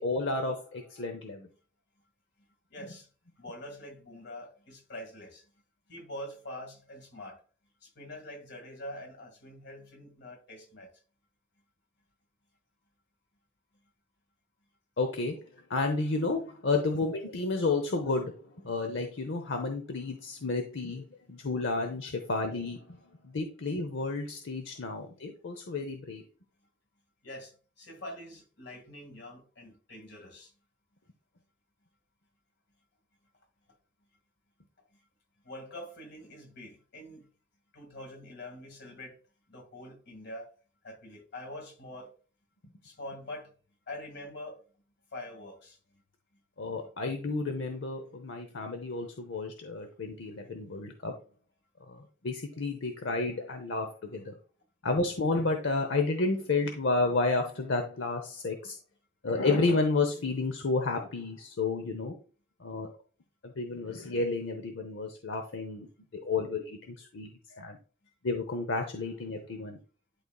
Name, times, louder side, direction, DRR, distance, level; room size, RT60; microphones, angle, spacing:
voice 1, 0.0-1.5 15.0-15.4 15.7-23.0 23.2-26.2 46.6-51.1 51.9-54.3 54.8-58.8 59.2-62.1 62.6-62.9 63.4-65.9 66.1-67.3 67.6-67.8 68.2-69.8, left 3 dB, 80° left, 0.8 m, -31 dB
voice 2, 2.7-3.1 3.4-5.5 5.9-7.4 7.8-10.9 27.2-30.5 35.4-37.2 37.7-39.2 39.5-40.5 40.8-42.1 42.8-43.5 43.9-44.6 45.1-45.8 46.8-46.9, left 1 dB, 60° left, 2.1 m, -45 dB
11.5 x 4.0 x 2.3 m
head